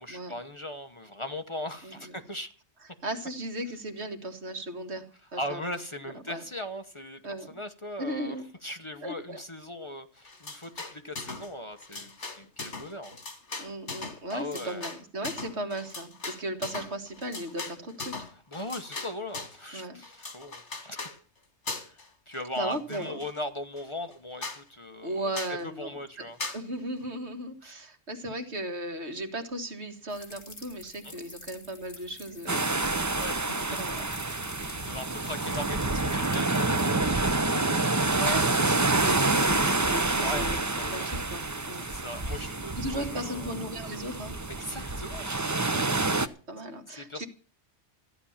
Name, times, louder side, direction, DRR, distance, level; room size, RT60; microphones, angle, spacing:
voice 1, 0.0-2.5 5.4-8.4 8.6-13.1 14.3-14.9 18.5-21.0 21.8-22.0 22.3-25.3 25.6-26.4 27.6-27.8 31.0-31.2 33.0-33.6 34.8-37.7 40.2-41.1 41.8-43.5 44.5-45.3 45.6-45.9 47.0-47.2, left 1 dB, 25° left, 7 dB, 1.1 m, -39 dB
voice 2, 1.8-2.2 3.0-5.1 5.3-5.6 6.2-6.4 7.2-7.6 8.0-8.5 9.0-9.4 13.6-18.1 19.7-20.0 22.6-23.2 25.0-25.9 26.5-33.2 33.6-34.0 38.0-40.6 40.9-41.8 42.3-42.4 42.8-44.4 46.5-47.3, right 1 dB, 70° right, 6 dB, 2.1 m, -36 dB
sound 1, 10.2-11.5 11.8-19.6 20.0-21.2 21.7-22.1 22.3-23.3 23.8-23.9 24.1-24.2 24.4-24.6 25.3-25.6 26.4-26.6, left 3 dB, 85° left, 2.6 m, -39 dB
sound 2, 30.1-36.9, left 2 dB, 50° left, 2.6 m, -48 dB
sound 3, 32.5-46.3, right 3 dB, 20° right, 0.6 m, -28 dB
14.5 x 10.0 x 7.2 m, 0.39 s
omnidirectional pair, 1.2 m